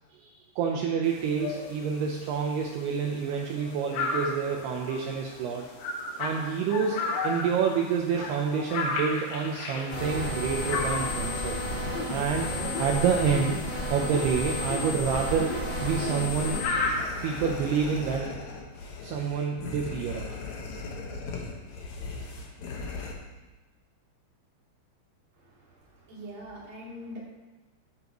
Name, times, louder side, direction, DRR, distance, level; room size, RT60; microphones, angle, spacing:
voice 1, 0.1-5.7 6.2-12.5 12.8-13.6 13.9-16.6 17.2-18.3 19.0-20.4, right 6 dB, 80° right, 1 dB, 2.4 m, -28 dB
sound 1, 1.0-18.2, left 3 dB, 70° left, 3.7 m, -36 dB
sound 2, 9.9-16.6, left 1 dB, 45° left, 0.9 m, -31 dB
sound 3, 15.7-23.1, left 3 dB, 90° left, 1.6 m, -38 dB
voice 2, 25.4-27.2, equal, 50° right, -6 dB, 4.4 m, -43 dB
13.0 x 10.5 x 3.1 m, 1.1 s
omnidirectional pair, 5.6 m